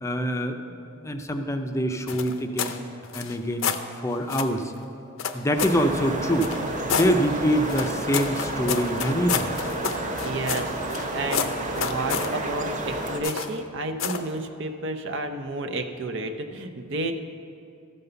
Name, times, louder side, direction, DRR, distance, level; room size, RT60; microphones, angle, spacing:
voice 1, 0.0-2.8 3.1-3.7 4.0-4.7 5.3-6.5 6.9-9.5, equal, 15° left, 5 dB, 0.5 m, -25 dB
sound 1, 2.1-2.8 3.1-3.8 4.3-4.6 5.2-5.8 6.4-7.1 7.7-11.1 11.3-12.3 13.2-13.6 14.0-14.3, left 7 dB, 70° left, 0.6 m, -29 dB
sound 2, 5.6-13.2, right 1 dB, 40° right, 0.9 m, -31 dB
voice 2, 10.2-17.1, right 2 dB, 65° right, 5 dB, 0.7 m, -31 dB
13.5 x 5.4 x 6.8 m, 2.5 s
head